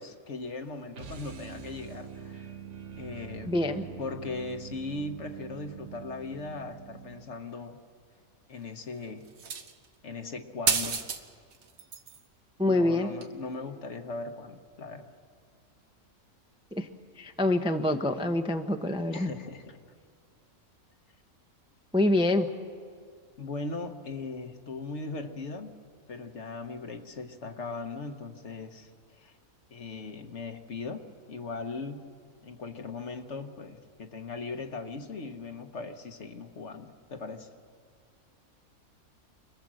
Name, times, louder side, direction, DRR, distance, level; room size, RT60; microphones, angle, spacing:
voice 1, 0.0-2.5 3.0-3.5 4.0-7.8 8.5-9.3 10.0-11.0 12.6-15.1 19.1-19.8 23.4-25.8 26.1-28.9 29.2-29.3 29.7-31.0 31.3-32.1 32.4-37.5, left 3 dB, 55° left, 6 dB, 1.5 m, -39 dB
sound 1, 0.9-7.4, right 7 dB, 60° right, 1.4 m, -44 dB
voice 2, 3.5-3.8 12.6-13.1 16.7-16.9 17.2-19.3 21.9-22.5, left 1 dB, 5° right, 6 dB, 0.6 m, -26 dB
sound 2, 9.4-9.9 10.7-11.2 11.5-12.2 13.2-13.3, right 6 dB, 75° right, 1.6 m, -30 dB
26.0 x 19.5 x 7.6 m, 2.2 s
omnidirectional pair, 1.5 m